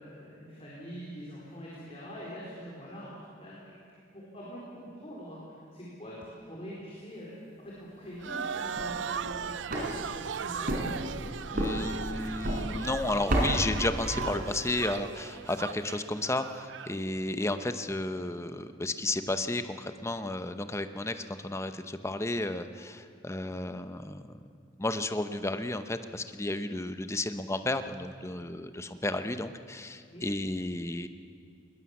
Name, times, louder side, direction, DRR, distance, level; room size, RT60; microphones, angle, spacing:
voice 1, 0.0-3.1 3.4-3.7 4.1-10.9 30.1-30.2, equal, 35° left, -6 dB, 4.3 m, -44 dB
sound 1, 8.2-17.0, right 7 dB, 75° right, 0.5 m, -38 dB
sound 2, 8.6-14.9, right 1 dB, 50° right, 4.4 m, -33 dB
voice 2, 11.5-24.4 24.8-31.1, left 2 dB, 15° left, 9 dB, 0.8 m, -33 dB
21.0 x 20.0 x 7.3 m, 2.4 s
head